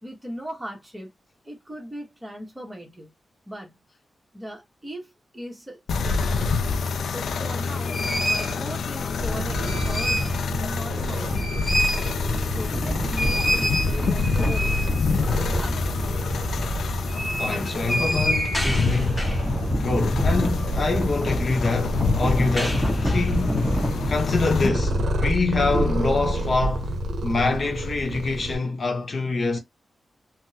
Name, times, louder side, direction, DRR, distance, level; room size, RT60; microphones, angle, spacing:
voice 1, 0.0-1.1 1.4-3.1 3.5-3.8 4.3-6.7 7.1-12.0 12.6-14.8 15.1-16.1, equal, 10° right, 1.1 m, -38 dB
sound 1, 5.9-24.7, left 4 dB, 85° left, 0.4 m, -27 dB
sound 2, 7.3-7.4 7.9-8.6 9.4-10.4 10.7-10.8 11.1-25.0, equal, 10° left, 1.1 m, -27 dB
Purr, 9.2-28.6, right 1 dB, 75° right, 0.6 m, -31 dB
voice 2, 17.4-19.3 19.7-23.7 24.1-29.6, left 3 dB, 40° left, 0.9 m, -26 dB
3.5 x 2.1 x 2.7 m
wide cardioid pair, 155°, 0 cm